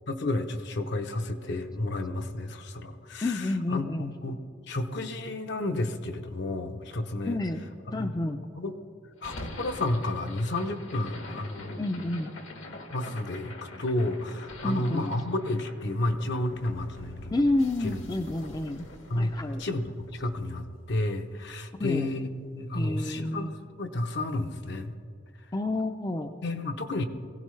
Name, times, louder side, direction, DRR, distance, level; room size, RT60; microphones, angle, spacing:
voice 1, 0.1-4.4 4.7-7.4 7.9-8.1 8.5-8.7 9.2-11.8 12.9-17.4 17.8-18.0 19.1-24.9 26.4-27.1, left 2 dB, 60° left, 6 dB, 0.8 m, -31 dB
voice 2, 3.2-4.2 7.3-7.6 7.9-8.4 11.8-12.3 14.6-15.2 17.3-18.9 19.2-19.6 21.7-22.1 22.7-23.5 25.5-26.4, left 2 dB, 20° left, 6 dB, 0.4 m, -29 dB
sound 1, 9.2-21.4, left 2 dB, 75° left, 1.7 m, -45 dB
22.0 x 16.0 x 3.2 m, 2.5 s
head